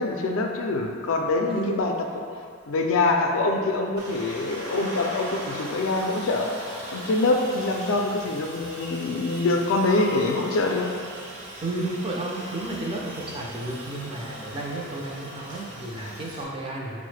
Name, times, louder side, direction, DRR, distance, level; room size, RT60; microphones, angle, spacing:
voice 1, 0.0-1.9 2.7-10.9, left 2 dB, 65° left, 2 dB, 0.4 m, -25 dB
voice 2, 1.5-1.9 9.3-9.5 11.6-17.0, right 2 dB, 25° right, -2 dB, 0.4 m, -32 dB
Aircraft, 4.0-16.4, right 1 dB, 65° right, 0.9 m, -39 dB
5.3 x 2.0 x 3.2 m, 2.3 s
head